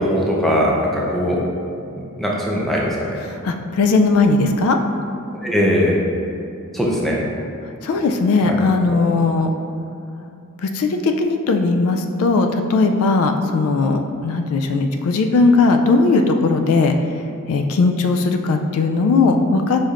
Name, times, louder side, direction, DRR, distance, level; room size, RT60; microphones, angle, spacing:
voice 1, 0.0-1.4 1.9-3.2 5.4-6.0 6.7-7.2 8.4-8.6 8.9-9.0, equal, ahead, -4 dB, 0.5 m, -20 dB
voice 2, 3.2-4.8 7.8-9.5 10.6-16.9 17.5-19.9, left 3 dB, 75° left, 5 dB, 0.3 m, -18 dB
5.0 x 4.2 x 2.4 m, 2.6 s
head